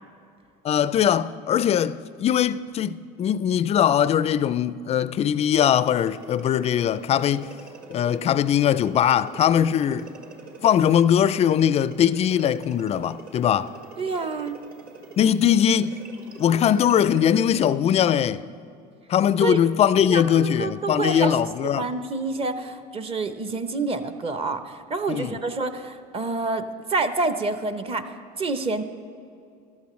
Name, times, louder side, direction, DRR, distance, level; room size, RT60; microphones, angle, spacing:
voice 1, 0.6-7.5 7.9-10.1 10.6-13.7 15.2-16.0 16.4-18.4 19.1-21.9 25.1-25.4, left 9 dB, 30° left, 0.4 m, -21 dB
sound 1, 6.0-17.8, right 4 dB, 45° right, 1.7 m, -44 dB
voice 2, 14.0-14.6 19.4-19.6 20.1-21.4 21.6-28.8, right 3 dB, 30° right, 0.8 m, -28 dB
14.5 x 12.0 x 3.1 m
supercardioid pair, 100°, 20 cm